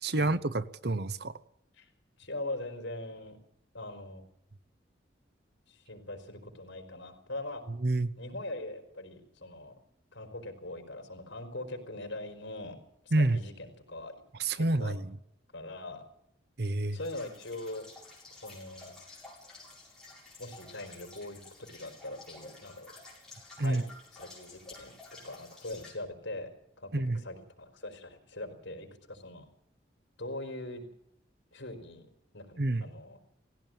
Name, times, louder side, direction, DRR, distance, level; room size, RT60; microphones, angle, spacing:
voice 1, 0.0-1.3 7.8-8.1 13.1-13.4 14.4-15.2 16.6-17.0 23.6-23.8 26.9-27.2 32.6-32.9, right 2 dB, 55° right, 0.8 m, -28 dB
voice 2, 2.2-3.4 3.7-4.2 5.7-7.6 8.2-9.7 10.1-12.8 13.0-14.1 14.6-15.0 15.5-16.0 16.9-17.9 18.4-18.9 20.4-22.9 23.6-23.8 24.1-24.9 25.2-26.5 26.8-29.5 30.2-30.8 31.5-32.1 32.3-33.2, left 2 dB, 80° left, 4.4 m, -41 dB
sound 1, 17.0-25.9, left 3 dB, 5° left, 7.6 m, -52 dB
18.5 x 16.5 x 9.1 m
head